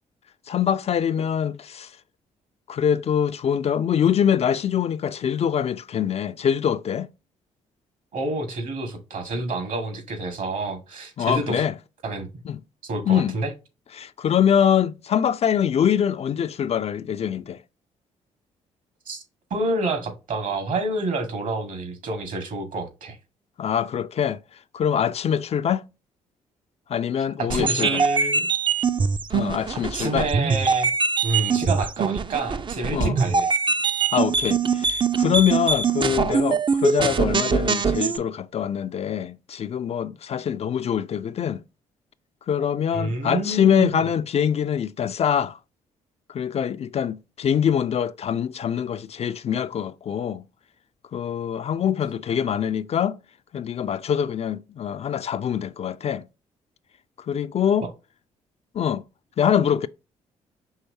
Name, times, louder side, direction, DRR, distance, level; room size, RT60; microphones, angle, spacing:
voice 1, 0.5-1.9 2.7-7.1 11.2-11.7 12.5-12.6 13.1-13.4 14.0-17.6 23.6-24.4 24.7-25.8 26.9-28.0 29.3-30.3 32.9-33.2 34.1-41.6 42.5-45.6 46.3-50.4 51.1-53.2 53.5-56.3 57.3-57.9 58.7-59.0 59.4-59.9, left 8 dB, 45° left, 0.4 m, -24 dB
voice 2, 8.1-11.7 12.0-12.3 12.8-13.5 19.0-19.2 19.5-23.2 27.2-28.5 29.9-30.9 31.2-33.5 42.9-44.1 57.8-57.9, right 2 dB, 60° right, 1.7 m, -28 dB
sound 1, 27.5-38.2, right 5 dB, 35° right, 0.5 m, -23 dB
5.7 x 3.1 x 2.7 m
hypercardioid pair, 50°, 15 cm